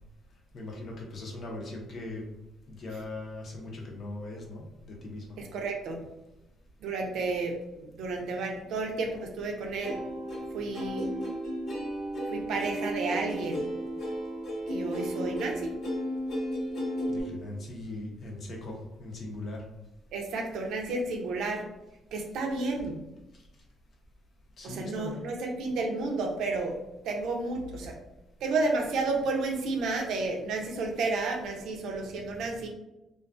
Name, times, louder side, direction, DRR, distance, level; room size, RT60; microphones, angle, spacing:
voice 1, 0.5-2.2 2.7-5.4 17.1-19.6 24.6-25.3, left 2 dB, 55° left, 0 dB, 0.7 m, -40 dB
voice 2, 5.4-6.1 6.8-10.0 10.5-11.1 12.3-13.7 14.7-15.7 20.1-21.7 22.1-23.0 24.6-28.0 28.4-32.7, right 3 dB, 80° right, 1 dB, 0.5 m, -31 dB
Plucked string instrument, 9.8-17.2, equal, 80° left, 1.1 m, -34 dB
2.4 x 2.3 x 2.4 m, 0.94 s
cardioid pair, 90°, 0 cm